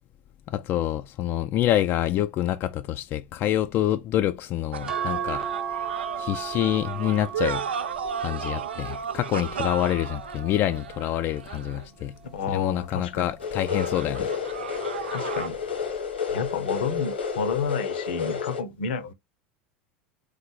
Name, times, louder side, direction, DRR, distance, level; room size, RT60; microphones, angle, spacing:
voice 1, 0.5-5.5 6.2-7.7 8.2-12.1 12.5-14.3, left 13 dB, 40° left, 0.3 m, -26 dB
sound 1, 4.7-12.0 13.6-15.5, right 6 dB, 80° right, 0.3 m, -34 dB
sound 2, 4.9-11.5 12.1-13.5 14.8-15.2 15.5-15.6, right 8 dB, 10° right, 0.7 m, -37 dB
voice 2, 12.3-13.3 15.1-15.6 16.3-19.1, left 5 dB, 70° left, 0.8 m, -30 dB
sound 3, 13.4-18.6, left 6 dB, 90° left, 1.2 m, -30 dB
3.8 x 3.3 x 3.6 m
hypercardioid pair, 85°, 6 cm